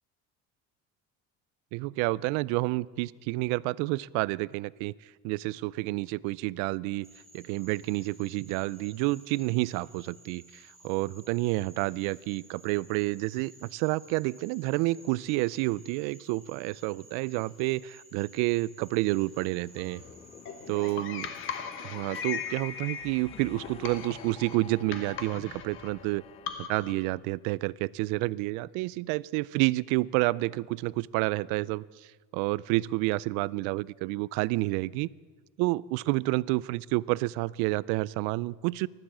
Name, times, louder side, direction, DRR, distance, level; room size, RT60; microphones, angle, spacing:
voice 1, 1.7-4.9 5.2-7.1 7.3-20.0 20.7-21.3 21.8-26.2 26.6-35.1 35.6-38.9, right 21 dB, 80° right, 22 dB, 0.4 m, -29 dB
Frog, 7.0-20.9, right 1 dB, ahead, 3.0 m, -56 dB
sound 1, 19.6-26.5, left 7 dB, 20° left, 0.4 m, -50 dB
sound 2, 19.8-27.0, left 7 dB, 45° left, 1.2 m, -39 dB
15.0 x 13.0 x 7.3 m, 1.4 s
cardioid pair, 175°, 30 cm